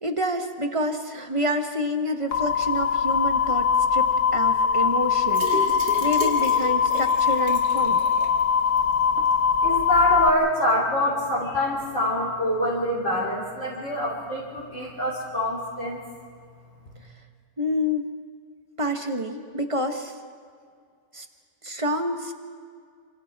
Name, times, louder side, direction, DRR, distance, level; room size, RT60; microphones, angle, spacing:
voice 1, 0.0-8.1 17.6-18.1 18.8-20.2 21.1-21.3 21.6-22.3, equal, 20° right, 5 dB, 1.0 m, -28 dB
sound 1, 2.3-10.3, left 6 dB, 55° left, 1.0 m, -22 dB
sound 2, 5.3-8.4 8.8-8.9 9.2-9.3, right 2 dB, 70° right, 2.9 m, -34 dB
voice 2, 9.6-16.0, left 1 dB, 40° left, -6 dB, 3.7 m, -25 dB
29.0 x 27.0 x 3.6 m, 2.1 s
omnidirectional pair, 2.0 m